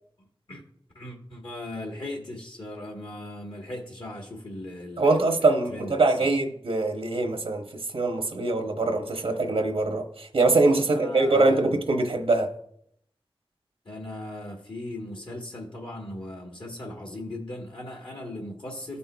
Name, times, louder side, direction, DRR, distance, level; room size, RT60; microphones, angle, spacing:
voice 1, 0.2-0.6 0.9-6.3 10.7-11.8 13.8-19.0, left 1 dB, 65° left, 0 dB, 1.2 m, -38 dB
voice 2, 5.0-7.6 7.9-12.5, right 2 dB, 90° right, 4 dB, 0.9 m, -23 dB
13.5 x 5.4 x 2.3 m, 0.71 s
wide cardioid pair, 80°, 9 cm